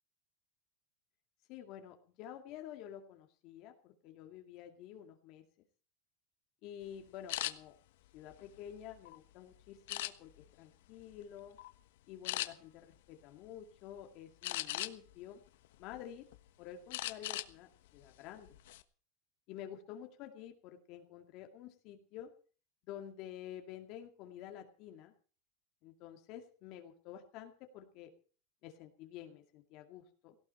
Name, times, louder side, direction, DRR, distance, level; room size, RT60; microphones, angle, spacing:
voice 1, 1.5-5.4 6.6-7.7 8.1-11.6 12.1-15.4 15.8-16.3 16.6-18.6 19.5-22.3 22.9-25.1 25.8-28.1 28.6-30.4, left 10 dB, 45° left, 4 dB, 2.3 m, -50 dB
sound 1, 7.3-7.5 8.2-9.2 9.9-10.5 11.0-11.2 11.6-11.7 12.2-12.5 14.4-15.1 15.6-16.4 16.9-17.5 17.9-18.0 18.5-18.8, left 16 dB, 75° left, 1.3 m, -38 dB
18.0 x 16.5 x 4.4 m, 0.41 s
supercardioid pair, 160°, 0 cm